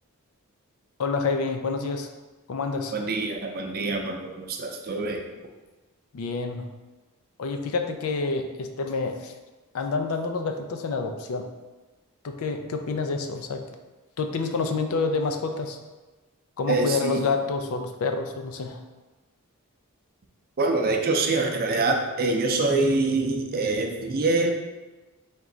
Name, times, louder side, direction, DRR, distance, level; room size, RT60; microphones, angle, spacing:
voice 1, 1.0-2.1 2.5-3.0 6.1-6.7 7.4-9.3 9.7-11.5 12.2-13.6 14.2-15.8 16.6-18.8, left 4 dB, 70° left, 6 dB, 0.4 m, -28 dB
voice 2, 2.9-5.2 16.7-17.2 20.6-24.5, right 3 dB, 40° right, 2 dB, 0.5 m, -25 dB
3.5 x 3.1 x 3.8 m, 1.2 s
head